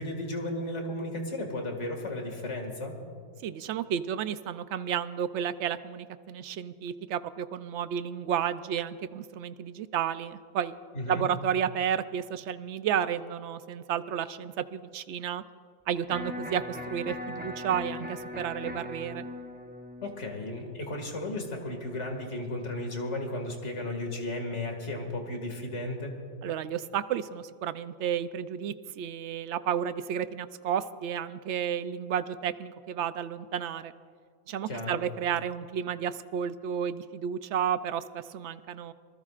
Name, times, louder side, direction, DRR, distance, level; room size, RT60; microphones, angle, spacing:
voice 1, 0.0-3.0 10.9-11.3 20.0-26.1 34.7-35.0, left 1 dB, 50° left, 3 dB, 2.4 m, -34 dB
voice 2, 3.4-10.8 11.1-15.4 15.9-19.2 26.4-33.9 34.5-38.9, right 8 dB, 65° right, 13 dB, 0.7 m, -32 dB
Electric guitar, 16.1-22.1, left 1 dB, 10° right, 0.7 m, -40 dB
26.0 x 20.0 x 2.5 m, 2.1 s
omnidirectional pair, 1.5 m